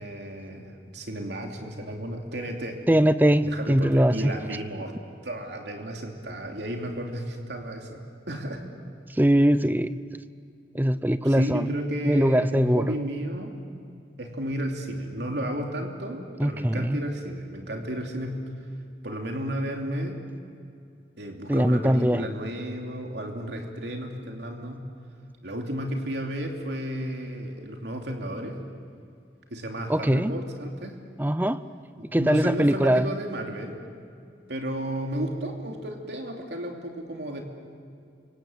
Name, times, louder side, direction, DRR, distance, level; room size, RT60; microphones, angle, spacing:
voice 1, 0.0-2.8 3.4-5.0 5.2-8.0 8.3-8.6 11.2-13.5 14.2-18.5 19.0-20.2 21.2-24.9 25.4-28.6 29.5-31.0 32.0-33.8 34.5-37.4, right 1 dB, 85° right, 2 dB, 2.9 m, -33 dB
voice 2, 2.9-4.3 9.2-10.0 10.7-11.6 12.0-12.9 16.4-17.0 21.5-22.2 29.9-30.3 31.2-31.6 32.1-33.1, equal, 10° right, 14 dB, 0.6 m, -21 dB
29.0 x 25.5 x 8.0 m, 2.3 s
head